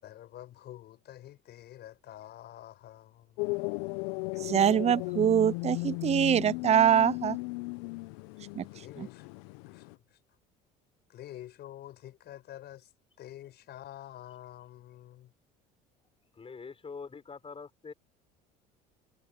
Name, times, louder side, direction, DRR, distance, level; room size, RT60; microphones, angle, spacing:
voice 1, 0.0-3.4 8.7-9.3 9.7-10.2 11.1-12.9 13.2-15.3, left 13 dB, 55° left, 6.1 m, -48 dB
sound 1, 3.4-9.9, left 26 dB, 70° left, 1.0 m, -36 dB
voice 2, 4.4-7.4 8.6-8.7, right 9 dB, 30° right, 0.7 m, -24 dB
voice 3, 16.3-17.9, left 5 dB, 30° left, 5.6 m, -44 dB
hypercardioid pair, 70°, 20 cm